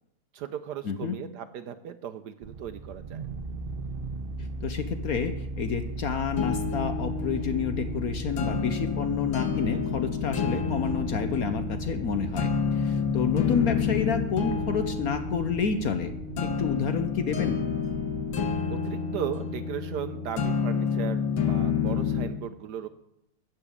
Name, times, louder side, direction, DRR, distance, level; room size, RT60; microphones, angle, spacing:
voice 1, 0.3-3.3 18.7-22.9, right 10 dB, 70° right, 11 dB, 1.0 m, -36 dB
voice 2, 0.8-1.2 4.6-16.1 16.4-17.6, left 6 dB, 60° left, 9 dB, 1.0 m, -29 dB
sound 1, 2.4-18.6, right 3 dB, 45° right, 0.7 m, -38 dB
sound 2, 6.4-22.4, left 6 dB, 85° left, 2.0 m, -29 dB
13.5 x 6.1 x 8.5 m, 0.82 s
omnidirectional pair, 2.1 m